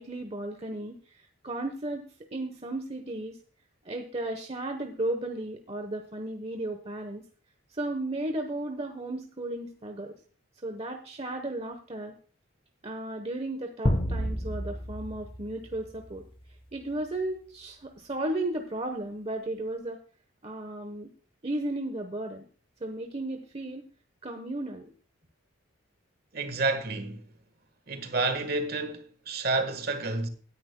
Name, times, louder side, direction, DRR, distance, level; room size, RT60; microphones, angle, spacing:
voice 1, 0.0-3.4 3.8-7.2 7.7-10.1 10.6-12.1 12.8-16.2 16.7-20.0 20.4-21.1 21.4-22.4 22.8-23.9 24.2-24.9, right 1 dB, 30° right, 1.0 m, -34 dB
sound 1, 13.8-16.4, equal, 25° left, 0.9 m, -30 dB
voice 2, 26.3-27.3 27.9-30.3, right 3 dB, 50° right, 1.4 m, -30 dB
17.0 x 10.5 x 2.2 m
head